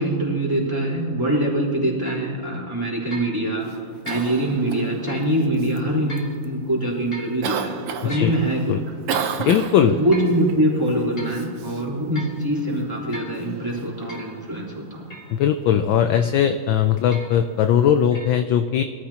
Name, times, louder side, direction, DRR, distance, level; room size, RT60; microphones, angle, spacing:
voice 1, 0.0-3.7 4.0-8.6 9.9-15.1, right 1 dB, 10° right, -5 dB, 3.9 m, -23 dB
sound 1, 2.1-2.3 3.1-3.4 4.1-4.3 5.1-5.3 6.1-6.3 7.1-7.4 8.1-8.4 9.1-9.4 10.1-10.4 10.9-11.4 12.1-12.4 13.1-13.4 14.1-14.3 15.1-15.4 16.1-16.5 17.1-17.4 18.1-18.3, right 1 dB, 15° left, 2.5 m, -38 dB
Cough, 3.6-18.1, right 7 dB, 90° right, 1.9 m, -36 dB
voice 2, 9.4-10.0 15.3-18.8, left 9 dB, 75° left, 8 dB, 1.2 m, -19 dB
23.0 x 13.5 x 2.9 m, 2.3 s
omnidirectional pair, 2.4 m